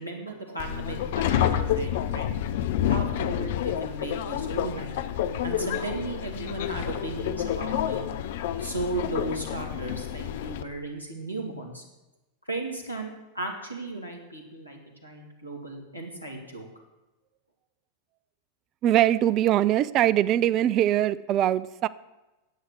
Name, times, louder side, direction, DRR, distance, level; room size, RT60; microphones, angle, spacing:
voice 1, 0.0-2.4 2.9-5.0 5.4-8.0 8.6-11.8 12.5-16.7, right 2 dB, 90° left, 0 dB, 2.2 m, -35 dB
Subway metro underground, 0.6-10.6, left 10 dB, 55° left, 0.6 m, -29 dB
voice 2, 18.8-21.9, right 12 dB, 35° right, 18 dB, 0.4 m, -22 dB
10.5 x 7.9 x 7.5 m, 1.1 s
figure-of-eight pair, 90°, 0 cm